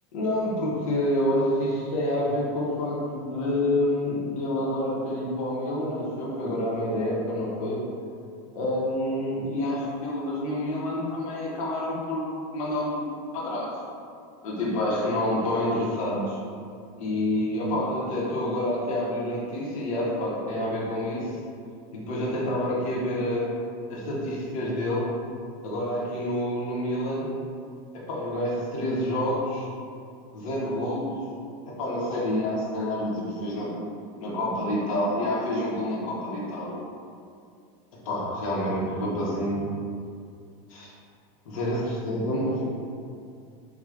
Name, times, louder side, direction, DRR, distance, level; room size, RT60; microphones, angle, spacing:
voice 1, 0.1-7.8 8.5-12.2 12.5-13.1 13.3-13.8 14.4-16.4 17.0-21.4 21.9-23.5 23.9-25.1 25.6-27.3 27.9-29.7 30.3-31.1 31.7-33.7 34.2-36.8 38.0-39.7 40.7-40.9 41.4-42.6, left 1 dB, 85° left, -5 dB, 1.1 m, -28 dB
4.8 x 2.4 x 2.4 m, 2.4 s
supercardioid pair, 165°, 17 cm